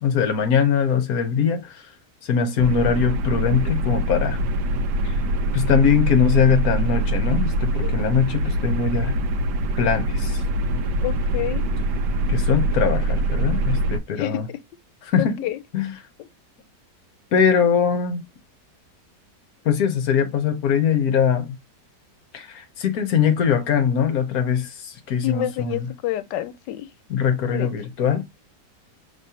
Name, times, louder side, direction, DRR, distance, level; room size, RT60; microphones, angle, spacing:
voice 1, 0.0-1.8 2.2-4.4 5.0-5.1 5.5-9.2 9.8-10.4 12.3-14.5 15.0-15.4 15.7-16.0 17.3-18.2 19.6-21.6 22.3-25.9 27.1-28.2, left 7 dB, 60° left, 1.3 m, -21 dB
sound 1, 2.6-14.0, right 1 dB, 75° right, 1.3 m, -23 dB
voice 2, 11.0-11.6 14.2-14.6 15.2-15.6 25.2-26.9 27.5-27.7, left 13 dB, 90° left, 1.3 m, -28 dB
5.2 x 3.5 x 2.8 m
omnidirectional pair, 1.9 m